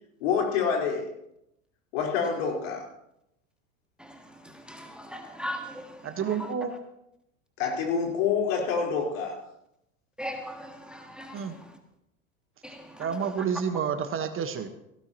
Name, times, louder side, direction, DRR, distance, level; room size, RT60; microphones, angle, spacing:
voice 1, 0.2-1.1 1.9-2.9 7.6-9.4, left 6 dB, 60° left, 4.4 m, -27 dB
voice 2, 4.0-6.5 10.2-11.8 12.6-13.4, equal, ahead, 1.6 m, -40 dB
voice 3, 6.0-6.7 11.3-11.5 13.0-14.7, right 7 dB, 30° right, 1.4 m, -29 dB
18.5 x 16.5 x 3.0 m
figure-of-eight pair, 80°, 41 cm